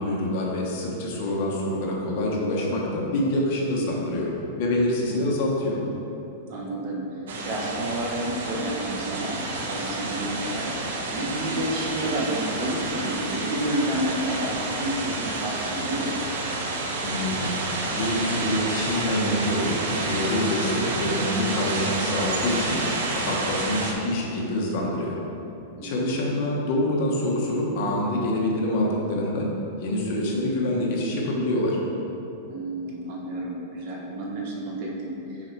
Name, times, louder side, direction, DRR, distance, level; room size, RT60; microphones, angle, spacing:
voice 1, 0.0-4.3 4.6-5.8 17.0-17.6 17.9-22.8 23.1-25.2 25.8-29.5 29.8-31.8, left 1 dB, 45° left, -2 dB, 1.2 m, -26 dB
voice 2, 6.5-7.1 7.5-16.2 25.8-26.2 32.5-35.5, right 1 dB, 45° right, -2 dB, 1.1 m, -30 dB
sound 1, 7.3-23.9, right 2 dB, 75° right, 1.0 m, -29 dB
6.2 x 4.4 x 4.6 m, 2.9 s
supercardioid pair, 165°, 0 cm